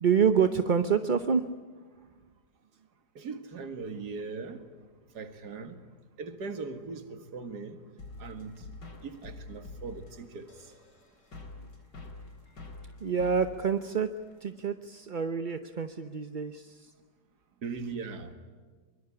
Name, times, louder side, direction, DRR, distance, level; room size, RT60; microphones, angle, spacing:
voice 1, 0.0-1.5 13.0-14.1 14.4-16.9, right 6 dB, 40° right, 9 dB, 0.8 m, -27 dB
voice 2, 3.2-4.6 5.1-5.8 6.2-7.8 8.2-8.6 9.0-10.7 17.6-18.3, right 4 dB, 70° right, 8 dB, 2.4 m, -39 dB
sound 1, 8.0-14.6, left 3 dB, 85° left, 4.6 m, -47 dB
24.5 x 23.0 x 9.9 m, 1.4 s
omnidirectional pair, 1.8 m